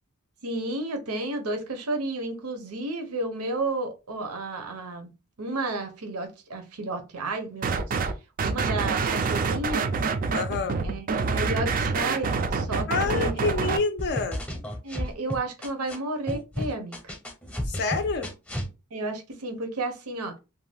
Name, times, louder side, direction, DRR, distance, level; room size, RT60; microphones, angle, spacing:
voice 1, 0.4-5.1 5.4-7.9 8.4-9.9 10.8-13.5 14.8-17.1 18.9-20.3, right 2 dB, 90° right, 0.7 m, -32 dB
sound 1, 7.6-8.1 8.4-13.8, right 4 dB, 40° right, 0.3 m, -26 dB
voice 2, 10.3-10.8 12.9-14.4 17.7-18.3, left 4 dB, 50° left, 0.4 m, -28 dB
sound 2, 14.0-15.9 16.3-18.7, equal, 5° left, 0.7 m, -32 dB
2.5 x 2.1 x 3.3 m
head